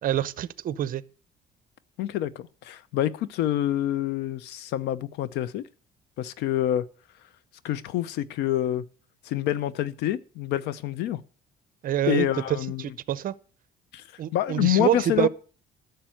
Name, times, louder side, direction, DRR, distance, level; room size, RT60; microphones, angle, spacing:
voice 1, 0.0-1.0 11.8-12.3 12.8-13.3 14.2-15.3, right 11 dB, 55° right, 0.7 m, -26 dB
voice 2, 2.0-5.6 6.2-6.8 7.6-8.8 9.2-11.2 12.1-12.9 13.9-14.0 14.3-15.3, left 12 dB, 85° left, 0.8 m, -27 dB
11.5 x 6.8 x 7.7 m
cardioid pair, 110°, 17 cm